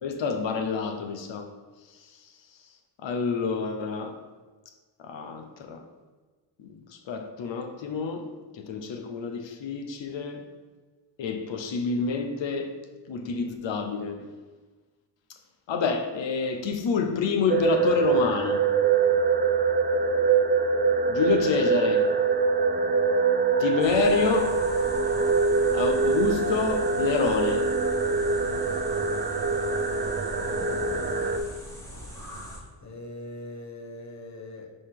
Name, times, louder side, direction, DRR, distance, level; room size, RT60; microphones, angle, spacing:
voice 1, 0.0-1.5 3.0-4.2 5.0-5.8 6.6-6.8 7.1-8.3 8.5-10.4 11.2-12.7 13.1-14.3 15.7-18.6 21.1-22.1 23.6-24.6 25.7-27.7, left 5 dB, 75° left, 6 dB, 1.0 m, -28 dB
sound 1, 17.5-31.4, right 4 dB, 20° right, 0.5 m, -24 dB
sound 2, 23.8-32.6, equal, 5° left, 1.7 m, -42 dB
voice 2, 30.4-31.1 32.8-34.7, left 2 dB, 40° left, 3 dB, 1.1 m, -41 dB
5.3 x 4.0 x 5.9 m, 1.3 s
cardioid pair, 105°, 45 cm